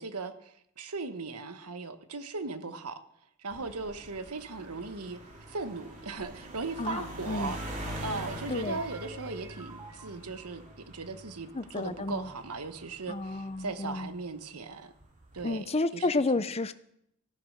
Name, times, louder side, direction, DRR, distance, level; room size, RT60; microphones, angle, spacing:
voice 1, 0.0-3.0 3.4-5.2 5.5-7.6 8.0-14.9 15.3-16.1 16.3-16.4, right 3 dB, 90° right, 10 dB, 1.3 m, -38 dB
sound 1, 3.5-14.2 15.0-15.4, right 1 dB, 35° right, 3.5 m, -44 dB
sound 2, 6.6-10.8, right 1 dB, 15° right, 1.4 m, -49 dB
voice 2, 6.8-7.6 8.5-8.8 11.5-12.3 13.1-14.1 15.4-16.7, left 2 dB, 25° left, 13 dB, 0.6 m, -31 dB
15.5 x 9.9 x 6.5 m, 0.76 s
head